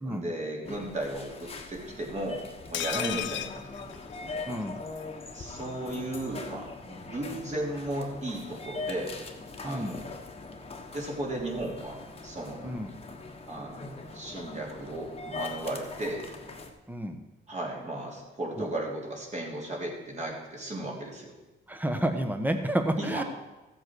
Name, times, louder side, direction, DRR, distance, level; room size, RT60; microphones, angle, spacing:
voice 1, 0.0-2.4 2.7-3.5 5.3-9.1 9.6-10.2 10.9-12.0 12.2-12.7 13.5-13.8 14.1-16.2 17.5-21.3 23.0-23.2, right 1 dB, 35° right, -1 dB, 3.2 m, -35 dB
sound 1, 0.7-16.7, left 3 dB, 30° left, 1.3 m, -42 dB
sound 2, 2.7-4.7 5.0-5.1 5.4-5.5, left 11 dB, 70° left, 0.6 m, -35 dB
voice 2, 9.6-9.9 12.6-12.9 16.9-17.2 18.6-18.7 21.7-23.2, right 1 dB, 10° right, 7 dB, 1.3 m, -30 dB
14.5 x 7.8 x 4.7 m, 1.1 s
cardioid pair, 90°, 20 cm